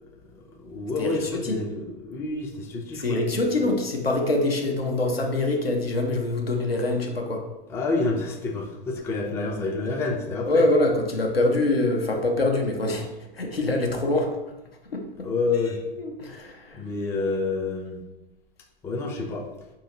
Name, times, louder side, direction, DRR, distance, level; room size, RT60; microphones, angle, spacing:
voice 1, 0.3-3.0 7.7-10.6 15.2-15.8 16.7-18.0 18.8-19.4, left 3 dB, 10° left, 2 dB, 0.3 m, -28 dB
voice 2, 1.0-1.6 2.9-7.5 10.4-13.1 13.3-14.4 14.9-15.3 16.0-16.8, left 2 dB, 85° left, 2 dB, 0.7 m, -24 dB
4.9 x 2.8 x 2.7 m, 1.0 s
figure-of-eight pair, 90°, 29 cm